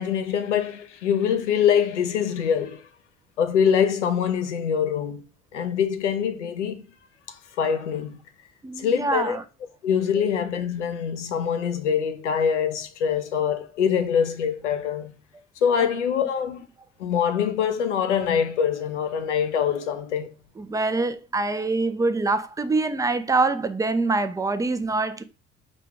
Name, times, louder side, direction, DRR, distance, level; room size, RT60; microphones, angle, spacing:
voice 1, 0.0-2.8 3.4-5.2 5.5-6.8 7.3-8.2 8.8-9.4 9.8-15.1 15.6-16.7 17.0-20.3, left 8 dB, 80° left, 0.7 m, -24 dB
voice 2, 8.6-9.4 10.1-10.2 15.8-15.9 20.6-25.2, right 3 dB, 10° right, 0.5 m, -25 dB
5.0 x 2.8 x 3.4 m
figure-of-eight pair, 50°, 35 cm